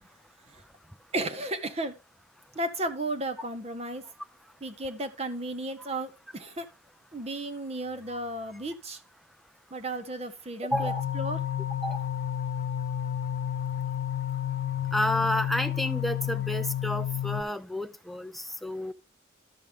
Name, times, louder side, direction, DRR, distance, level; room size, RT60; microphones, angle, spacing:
voice 1, 1.1-1.9 2.6-4.0 4.6-6.7 7.1-9.0 9.7-11.4, right 1 dB, 30° right, 0.8 m, -34 dB
sound 1, 10.7-17.4, left 10 dB, 90° left, 0.6 m, -31 dB
voice 2, 10.7-11.0 11.8-12.0 14.9-18.9, equal, ahead, 0.5 m, -30 dB
12.5 x 6.0 x 3.5 m
head